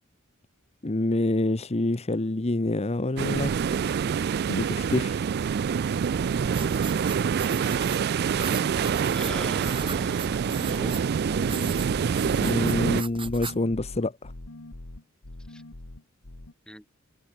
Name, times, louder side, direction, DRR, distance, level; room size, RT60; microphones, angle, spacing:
voice 1, 0.8-3.8 4.5-5.2 12.4-14.3, left 2 dB, 30° left, 0.9 m, -27 dB
sound 1, 3.2-13.0, right 7 dB, 50° right, 0.3 m, -26 dB
sound 2, 6.1-13.7, right 5 dB, 25° right, 5.2 m, -39 dB
voice 2, 9.1-11.1 15.5-15.6 16.7-16.9, equal, 5° left, 2.0 m, -41 dB
sound 3, 9.2-16.5, left 1 dB, 90° left, 1.8 m, -43 dB
head